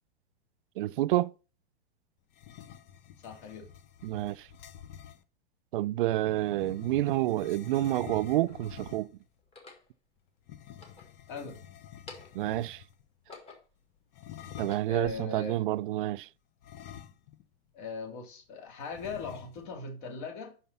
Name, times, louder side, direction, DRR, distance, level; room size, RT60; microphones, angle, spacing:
voice 1, 0.8-1.3 4.0-4.5 5.7-9.1 12.3-12.8 14.6-16.3, right 15 dB, 55° right, 0.4 m, -29 dB
sound 1, 2.3-5.2 6.1-9.2 10.4-13.0 14.1-15.0 16.6-17.5 17.8-17.9 18.9-19.8, left 10 dB, 35° left, 0.7 m, -48 dB
voice 2, 3.2-3.7 11.3-11.6 14.9-15.6 17.7-20.5, left 4 dB, 50° left, 2.8 m, -39 dB
sound 2, 6.9-7.0 7.8-8.6 9.4-9.9 10.6-11.6 11.9-12.5 13.0-13.8 14.3-15.1, left 3 dB, 20° left, 1.7 m, -51 dB
5.8 x 5.5 x 6.8 m
hypercardioid pair, 140°, 32 cm